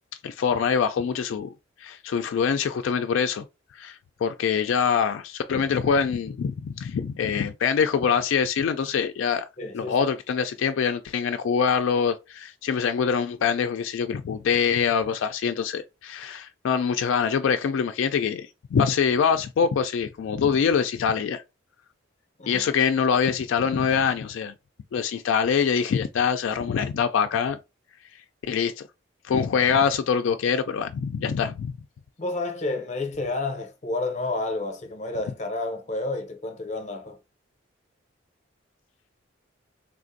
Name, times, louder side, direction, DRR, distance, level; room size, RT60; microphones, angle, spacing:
voice 1, 0.2-1.5 1.8-3.4 3.7-9.5 9.7-21.4 22.5-24.5 24.9-27.6 28.5-28.8 29.2-31.7, left 6 dB, 75° left, 0.3 m, -24 dB
voice 2, 9.6-10.1 22.4-22.7 32.2-37.2, left 2 dB, 35° left, 0.6 m, -30 dB
3.6 x 2.5 x 2.5 m
head